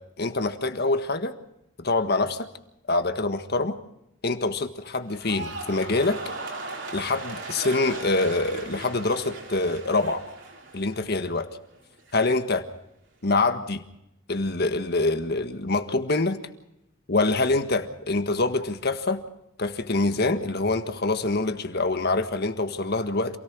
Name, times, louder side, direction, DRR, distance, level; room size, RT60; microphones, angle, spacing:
voice 1, 0.2-1.4 1.8-2.5 2.9-3.8 4.2-6.2 6.9-10.2 10.7-11.6 12.1-12.6 13.2-13.8 14.3-16.4 17.1-19.2 19.6-23.4, left 2 dB, 50° left, 8 dB, 1.6 m, -25 dB
sound 1, 5.1-11.4 11.7-12.2, right 3 dB, 65° right, 4.3 m, -38 dB
27.5 x 18.0 x 6.2 m, 0.82 s
head